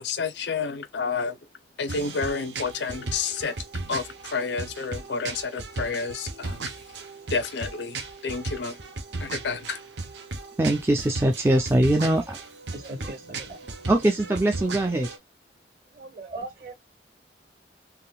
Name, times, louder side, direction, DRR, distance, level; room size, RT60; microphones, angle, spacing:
voice 1, 0.0-1.4 1.8-3.5 3.9-6.7 7.3-8.8 9.2-9.8, left 5 dB, 85° left, 0.6 m, -30 dB
sound 1, 1.9-15.2, right 3 dB, 85° right, 0.7 m, -36 dB
voice 2, 10.6-12.4 13.9-15.1, right 1 dB, 15° right, 0.4 m, -22 dB
voice 3, 12.7-13.9 14.3-14.4 15.9-16.7, right 2 dB, 55° right, 1.6 m, -39 dB
3.6 x 2.5 x 2.3 m
head